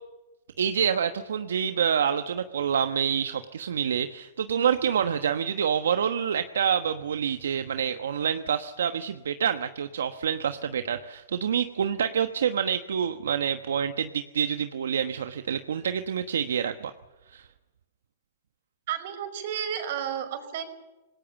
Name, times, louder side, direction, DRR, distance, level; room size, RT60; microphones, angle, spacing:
voice 1, 0.6-16.9 17.3-17.4, right 8 dB, 80° right, 8 dB, 1.2 m, -27 dB
voice 2, 18.9-20.7, right 9 dB, 60° right, 8 dB, 5.3 m, -32 dB
27.0 x 19.0 x 7.2 m, 1.1 s
hypercardioid pair, 130°, 0 cm